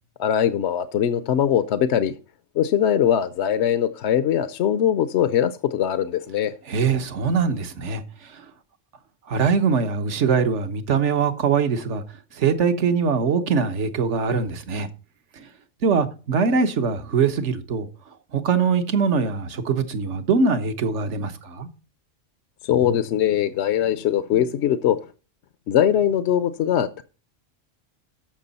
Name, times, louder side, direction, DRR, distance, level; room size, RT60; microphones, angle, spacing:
voice 1, 0.2-2.1 2.6-6.5 22.6-25.0 25.7-27.0, left 10 dB, 70° left, 0.9 m, -21 dB
voice 2, 6.7-8.0 9.3-12.0 12.4-14.9 15.4-15.5 15.8-17.9 18.3-21.7, right 5 dB, 70° right, 1.4 m, -22 dB
13.5 x 6.1 x 4.1 m
omnidirectional pair, 1.3 m